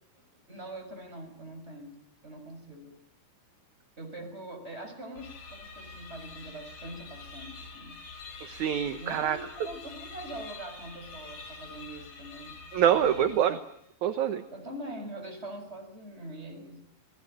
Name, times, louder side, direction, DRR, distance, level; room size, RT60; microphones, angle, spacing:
voice 1, 0.5-3.0 4.0-8.0 9.0-12.6 13.0-13.3 14.5-16.8, right 1 dB, 15° right, 4 dB, 6.5 m, -43 dB
sound 1, 5.2-13.9, left 4 dB, 55° left, 5.0 m, -46 dB
voice 2, 8.4-9.4 12.7-13.6 14.0-14.4, right 9 dB, 65° right, 7 dB, 2.2 m, -25 dB
28.5 x 20.0 x 9.0 m, 0.77 s
omnidirectional pair, 4.4 m